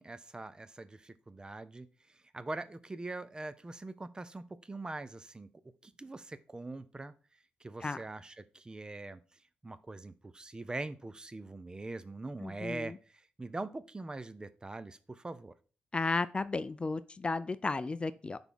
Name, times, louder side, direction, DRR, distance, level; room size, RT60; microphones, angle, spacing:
voice 1, 0.0-1.9 2.3-5.5 5.8-7.1 7.6-9.2 9.6-15.5, right 2 dB, 25° right, 0.6 m, -42 dB
voice 2, 12.4-13.0 15.9-18.4, left 3 dB, 30° left, 0.4 m, -34 dB
5.9 x 3.5 x 5.7 m
cardioid pair, 60°, 3 cm